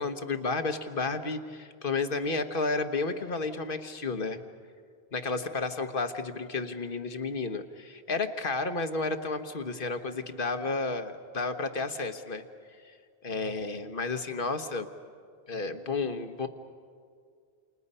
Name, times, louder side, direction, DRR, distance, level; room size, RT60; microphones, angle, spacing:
voice 1, 0.0-4.4 5.1-12.4 12.8-12.9 13.2-14.9 15.5-16.5, left 3 dB, 55° left, 8 dB, 1.4 m, -32 dB
29.0 x 28.0 x 5.5 m, 2.2 s
omnidirectional pair, 1.1 m